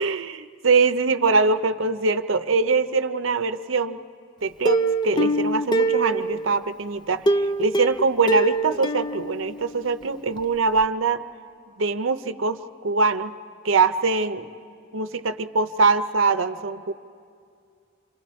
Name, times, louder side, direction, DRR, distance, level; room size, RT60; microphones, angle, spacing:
voice 1, 0.0-4.0 4.4-11.2 11.8-13.3 13.6-14.5 14.9-16.9, right 4 dB, 75° right, 10 dB, 0.7 m, -23 dB
Plucked string instrument, 4.6-6.6 7.3-10.0 10.4-10.5 10.8-10.9, right 2 dB, 20° left, 0.4 m, -24 dB
29.0 x 26.0 x 4.3 m, 2.4 s
head